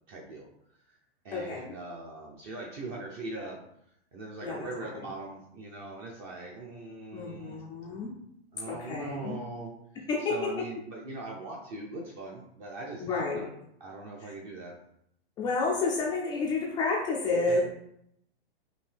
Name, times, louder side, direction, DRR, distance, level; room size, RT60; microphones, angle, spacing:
voice 1, 0.1-0.5 0.7-1.0 1.2-3.6 4.1-7.6 8.5-9.7 10.2-13.5 13.8-14.8 17.5-17.6, right 2 dB, 30° right, -1 dB, 0.7 m, -41 dB
voice 2, 1.3-1.7 4.4-5.0 7.1-8.1 8.7-9.4 10.1-10.5 13.0-13.5 14.2-14.3 15.4-17.6, left 3 dB, 15° left, -2 dB, 0.4 m, -30 dB
5.1 x 2.7 x 3.3 m, 0.74 s
hypercardioid pair, 140°, 32 cm